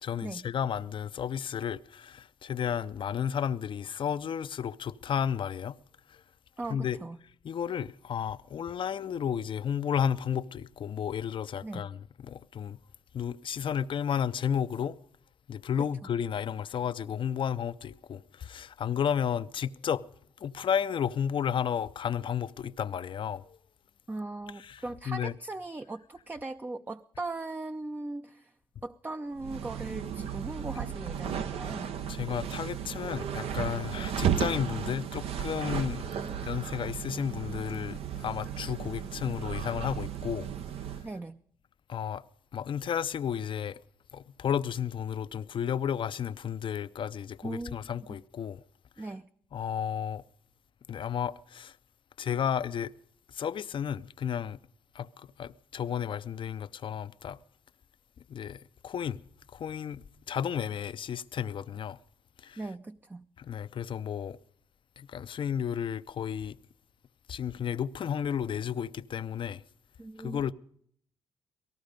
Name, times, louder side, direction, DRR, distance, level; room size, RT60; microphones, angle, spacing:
voice 1, 0.0-5.8 6.7-7.0 7.4-12.0 12.2-12.8 13.1-15.0 15.5-20.0 20.4-23.4 24.7-25.3 32.1-36.0 36.3-40.5 41.9-42.2 42.5-43.8 44.1-48.6 49.5-50.2 50.9-51.7 52.2-52.9 53.3-54.6 54.9-57.4 58.3-58.6 58.8-59.2 59.5-62.0 62.4-62.6 63.4-64.4 65.0-66.6 67.3-69.6 70.2-70.5, left 8 dB, 55° left, 0.6 m, -32 dB
voice 2, 6.6-7.2 11.6-11.9 15.8-15.9 24.1-28.5 28.8-31.9 41.0-41.4 47.4-48.2 49.0-49.3 62.6-63.3 70.0-70.5, right 2 dB, 20° right, 0.5 m, -39 dB
sound 1, 29.4-41.1, right 8 dB, 75° right, 0.8 m, -34 dB
18.0 x 14.5 x 5.2 m
supercardioid pair, 60°, 10 cm